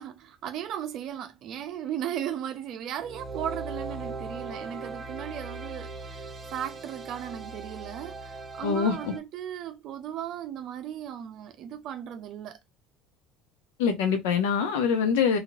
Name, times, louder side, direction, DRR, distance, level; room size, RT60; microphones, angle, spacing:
voice 1, 0.0-12.6, right 10 dB, 60° right, 0.5 m, -36 dB
sound 1, 3.0-9.2, right 3 dB, 30° right, 0.9 m, -39 dB
voice 2, 8.6-9.1 13.8-15.4, left 6 dB, 85° left, 0.9 m, -24 dB
3.1 x 3.0 x 2.4 m
supercardioid pair, 90°, 0 cm